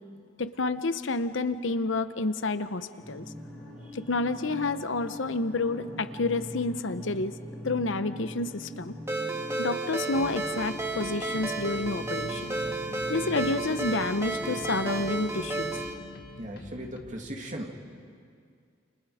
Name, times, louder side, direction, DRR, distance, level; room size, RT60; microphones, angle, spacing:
voice 1, 0.4-3.3 3.9-7.3 7.6-9.0 9.6-12.5 13.1-15.7, left 3 dB, 75° left, 12 dB, 0.9 m, -29 dB
sound 1, 3.0-15.8, equal, 5° left, 7.7 m, -42 dB
Ringtone, 9.1-15.9, right 2 dB, 15° right, 1.8 m, -32 dB
sound 2, 10.1-17.1, left 1 dB, 55° left, 1.4 m, -47 dB
voice 2, 16.4-17.7, equal, 40° right, 1 dB, 2.5 m, -38 dB
29.5 x 29.5 x 5.0 m, 2.2 s
head